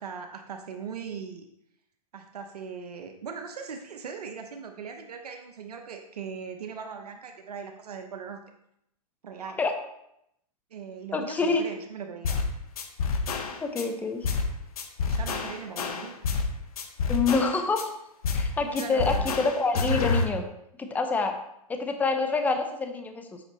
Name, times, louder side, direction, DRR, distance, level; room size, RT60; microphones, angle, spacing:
voice 1, 0.0-1.5 2.1-8.4 9.2-9.6 10.7-12.4 15.0-16.1 18.6-19.3, right 6 dB, 80° right, 5 dB, 1.0 m, -39 dB
voice 2, 11.1-11.6 13.6-14.3 17.1-17.9 18.3-20.5 20.8-21.4 21.7-23.4, left 4 dB, 10° left, 6 dB, 0.7 m, -27 dB
sound 1, 12.2-12.5 12.8-13.8 14.2-14.5 14.8-16.5 16.8-17.8 18.2-18.5 18.8-20.2, left 4 dB, 70° left, 1.3 m, -28 dB
8.0 x 5.9 x 4.1 m, 0.79 s
hypercardioid pair, 140°, 20 cm